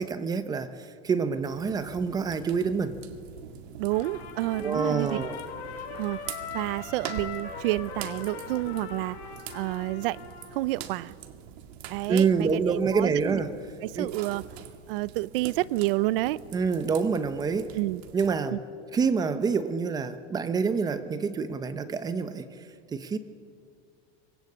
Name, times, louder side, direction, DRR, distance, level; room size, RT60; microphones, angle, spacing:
voice 1, 0.0-3.0 4.6-5.4 12.1-13.6 14.0-14.1 16.5-17.7 18.1-18.6 18.9-22.5 22.9-23.2, right 5 dB, 10° right, 10 dB, 0.7 m, -27 dB
sound 1, 1.4-18.4, right 9 dB, 75° right, 2.2 m, -44 dB
voice 2, 3.8-5.2 6.0-6.2 6.5-9.2 9.5-10.2 10.5-11.1 11.9-13.4 13.8-14.4 14.9-16.4 17.7-18.0 18.5-18.6, right 18 dB, 60° right, 19 dB, 0.7 m, -29 dB
Trumpet, 3.9-10.6, left 6 dB, 85° left, 5.2 m, -40 dB
25.0 x 21.0 x 8.5 m, 2.3 s
supercardioid pair, 175°, 32 cm